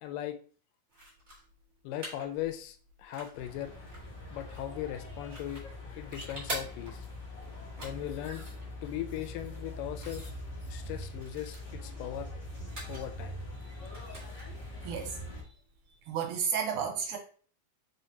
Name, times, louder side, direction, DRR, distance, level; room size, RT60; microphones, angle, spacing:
voice 1, 0.0-0.4 1.8-3.7 4.3-5.6 5.9-7.0 7.8-8.4 8.8-10.3 10.7-12.3 12.9-13.4, left 12 dB, 85° left, 8 dB, 2.2 m, -38 dB
sound 1, 0.9-16.0, right 1 dB, 35° right, 1.1 m, -48 dB
sound 2, 3.3-15.4, left 1 dB, 45° left, 1.5 m, -43 dB
voice 2, 14.9-15.2 16.1-17.2, right 7 dB, 80° right, 4 dB, 1.9 m, -32 dB
4.4 x 4.0 x 2.7 m, 0.42 s
omnidirectional pair, 3.9 m